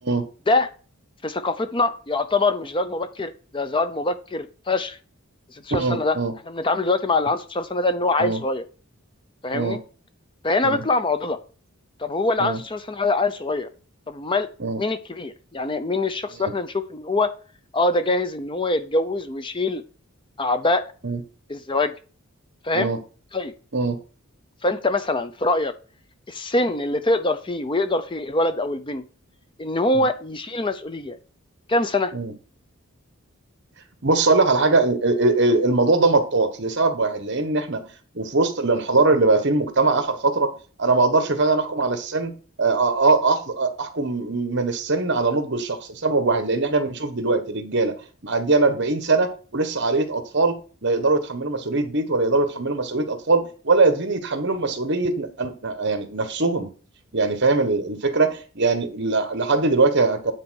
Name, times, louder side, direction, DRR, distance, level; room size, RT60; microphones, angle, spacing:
voice 1, 1.2-5.0 5.5-6.2 6.5-8.6 9.4-9.8 10.4-11.4 12.0-13.7 14.1-14.5 14.8-17.3 17.7-19.8 20.4-20.8 21.5-21.9 22.6-22.9 23.3-23.5 24.6-25.7 26.3-29.0 29.6-31.2 31.7-32.1, left 2 dB, 25° left, 11 dB, 0.6 m, -24 dB
voice 2, 5.7-6.3 8.2-8.4 9.5-9.8 10.6-10.8 12.4-12.6 14.6-14.8 21.0-21.2 22.7-23.0 23.7-24.0 29.9-30.1 32.1-32.3 34.0-37.8 38.1-40.5 40.8-42.3 42.6-47.9 48.2-50.6 50.8-56.7 57.1-60.3, right 3 dB, 55° right, 8 dB, 1.3 m, -21 dB
9.8 x 4.3 x 6.3 m, 0.37 s
head